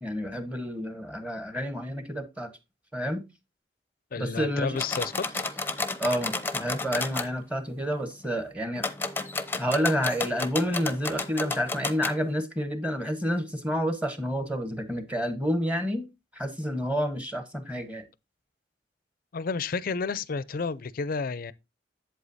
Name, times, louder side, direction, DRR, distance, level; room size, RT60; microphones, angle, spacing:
voice 1, 0.0-2.5 2.9-3.2 4.2-4.8 6.0-8.8 9.6-16.1 16.3-18.0, equal, 10° right, 1.1 m, -29 dB
voice 2, 4.1-5.5 19.3-21.5, left 4 dB, 55° left, 0.5 m, -31 dB
sound 1, 4.8-7.3 8.8-12.2, left 3 dB, 10° left, 0.7 m, -32 dB
8.1 x 7.8 x 2.6 m
head